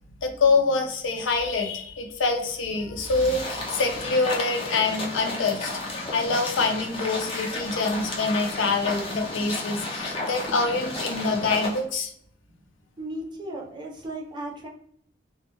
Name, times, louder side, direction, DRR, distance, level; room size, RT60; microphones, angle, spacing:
voice 1, 0.2-5.7 6.1-12.1, left 3 dB, 80° left, 4 dB, 0.5 m, -25 dB
sound 1, 3.0-11.8, left 2 dB, 30° left, 0.5 m, -33 dB
voice 2, 13.0-14.7, right 1 dB, 25° right, -2 dB, 0.5 m, -35 dB
2.1 x 2.1 x 2.8 m, 0.66 s
head